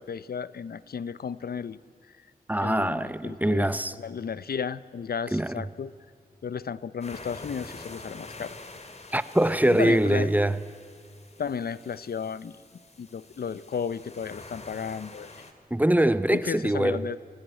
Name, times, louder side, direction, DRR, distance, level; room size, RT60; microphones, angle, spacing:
voice 1, 0.0-1.8 2.6-5.9 6.4-8.6 9.7-10.3 11.4-12.5 13.0-15.4 16.3-17.2, left 6 dB, 80° left, 0.7 m, -33 dB
voice 2, 2.5-3.9 5.3-5.5 9.1-10.6 15.7-17.0, right 1 dB, 10° right, 0.9 m, -23 dB
sound 1, 7.0-15.5, left 3 dB, 45° left, 2.4 m, -46 dB
27.0 x 18.0 x 9.1 m
wide cardioid pair, 90°, 16 cm